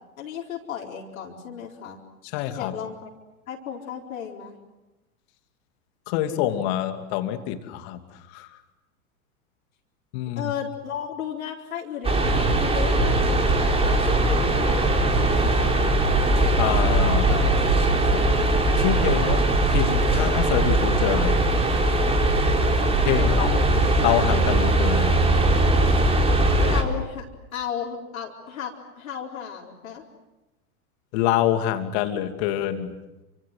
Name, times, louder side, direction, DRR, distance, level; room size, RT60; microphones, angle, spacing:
voice 1, 0.2-2.0 2.6-3.1 3.5-4.5 10.4-13.4 14.0-15.6 17.2-18.5 23.2-23.8 26.6-27.3 27.5-30.0, left 8 dB, 65° left, -1 dB, 4.4 m, -34 dB
voice 2, 2.2-2.7 6.1-8.6 10.1-10.5 16.6-17.3 18.8-21.4 23.0-23.6 24.0-25.2 31.1-32.9, left 12 dB, 45° left, 8 dB, 2.8 m, -26 dB
sound 1, 12.0-26.8, right 2 dB, 15° right, 3.9 m, -20 dB
28.5 x 26.0 x 7.9 m, 1.0 s
figure-of-eight pair, 95°, 44 cm